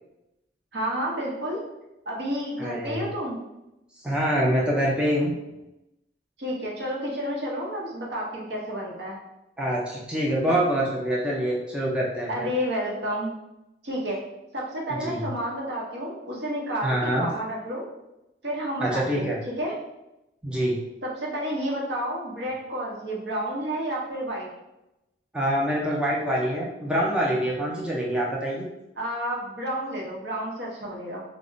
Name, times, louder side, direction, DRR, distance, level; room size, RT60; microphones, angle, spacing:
voice 1, 0.7-1.6 2.1-3.4 6.4-9.2 12.3-13.3 13.8-14.2 14.5-17.9 18.4-19.3 19.6-19.7 21.2-24.5 29.0-31.2, equal, 70° right, -3 dB, 0.8 m, -30 dB
voice 2, 2.6-3.1 4.0-5.4 9.6-12.5 14.9-15.3 16.8-17.3 18.8-19.4 20.4-20.8 25.3-28.6, equal, 5° right, -4 dB, 0.4 m, -25 dB
2.4 x 2.1 x 3.7 m, 0.92 s
head